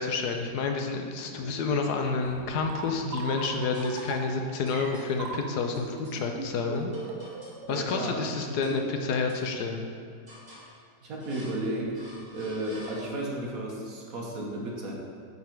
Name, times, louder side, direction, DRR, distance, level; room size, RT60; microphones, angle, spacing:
voice 1, 0.0-6.9 7.7-8.8 9.1-9.9, left 4 dB, 75° left, 4 dB, 1.3 m, -29 dB
sound 1, 1.3-1.8 2.2-3.1 3.7-4.4 4.7-5.1 5.7-6.2 6.9-7.7 8.0-8.8 9.2-9.9 10.3-10.7 11.2-11.7 11.9-13.4, equal, 15° right, 1.5 m, -49 dB
sound 2, 2.4-7.7, right 4 dB, 80° right, 1.3 m, -39 dB
voice 2, 7.7-8.8 11.0-14.9, right 1 dB, 60° right, -2 dB, 1.6 m, -34 dB
9.5 x 3.9 x 4.5 m, 2.1 s
omnidirectional pair, 1.8 m